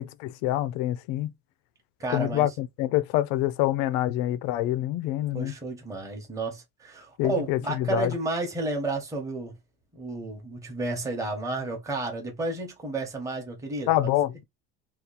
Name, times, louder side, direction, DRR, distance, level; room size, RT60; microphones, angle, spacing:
voice 1, 0.0-1.3 2.1-5.5 7.2-8.1 13.9-14.4, left 14 dB, 65° left, 0.5 m, -26 dB
voice 2, 2.0-2.5 5.3-9.5 9.9-14.4, right 2 dB, 10° right, 0.9 m, -32 dB
2.9 x 2.4 x 3.8 m
cardioid pair, 165°, 31 cm